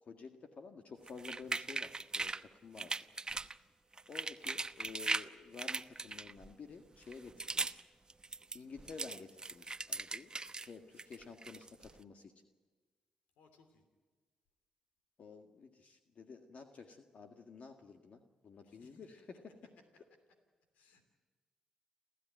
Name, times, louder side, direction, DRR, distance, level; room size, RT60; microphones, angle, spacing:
voice 1, 0.0-2.9 4.1-7.8 8.5-10.3 10.6-12.3 15.2-19.7, left 5 dB, 60° left, 5 dB, 1.8 m, -51 dB
sound 1, 1.1-2.4 2.8-3.6 3.9-5.3 5.6-6.5 7.0-7.8 8.1-10.7 11.0-11.9, right 3 dB, 30° right, 0.9 m, -39 dB
voice 2, 13.4-13.8 18.7-18.9 20.7-21.0, left 4 dB, 80° left, 7 dB, 2.9 m, -66 dB
29.5 x 13.5 x 9.2 m, 1.4 s
hypercardioid pair, 45°, 3 cm